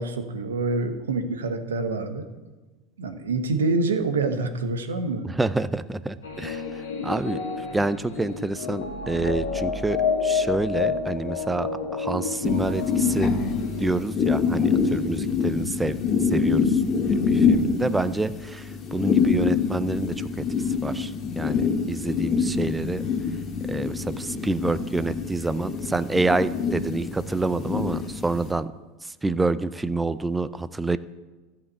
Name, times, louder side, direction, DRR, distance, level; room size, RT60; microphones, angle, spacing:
voice 1, 0.0-2.2 3.0-5.3, right 3 dB, 90° right, 8 dB, 1.1 m, -26 dB
voice 2, 5.2-6.6 7.0-7.4 7.7-13.3 13.8-16.0 16.3-16.8 17.1-20.3 20.8-23.0 23.7-28.7 29.0-31.0, right 3 dB, 10° right, 14 dB, 0.5 m, -27 dB
sound 1, 6.2-14.0, left 5 dB, 90° left, 1.9 m, -29 dB
sound 2, 12.4-28.5, left 5 dB, 35° left, 1.8 m, -25 dB
14.0 x 5.7 x 8.0 m, 1.2 s
hypercardioid pair, 90°, 0 cm